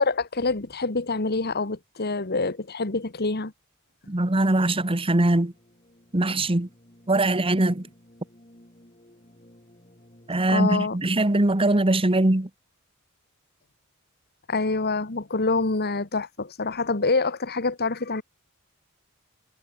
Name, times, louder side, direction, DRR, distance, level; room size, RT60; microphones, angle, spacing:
voice 1, 0.0-3.5 10.5-11.0 14.5-18.2, left 3 dB, 50° left, 1.8 m, -26 dB
voice 2, 4.1-5.5 6.1-6.7 7.1-7.9 10.3-12.5, right 2 dB, 25° right, 1.3 m, -22 dB
sound 1, 5.3-11.4, left 1 dB, 30° left, 4.8 m, -54 dB
head